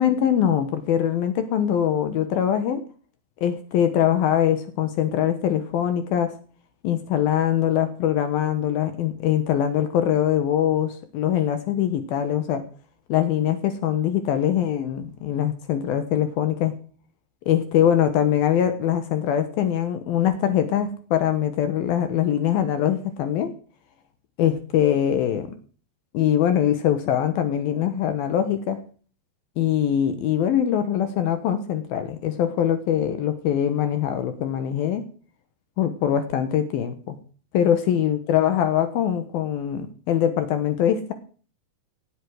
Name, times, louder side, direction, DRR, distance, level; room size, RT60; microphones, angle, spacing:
voice 1, 0.0-2.8 3.4-6.3 6.8-12.6 13.1-16.7 17.5-23.5 24.4-25.5 26.1-28.8 29.6-35.0 35.8-37.2 37.5-41.1, left 10 dB, 75° left, 9 dB, 3.1 m, -22 dB
18.5 x 8.1 x 6.5 m, 0.41 s
omnidirectional pair, 4.3 m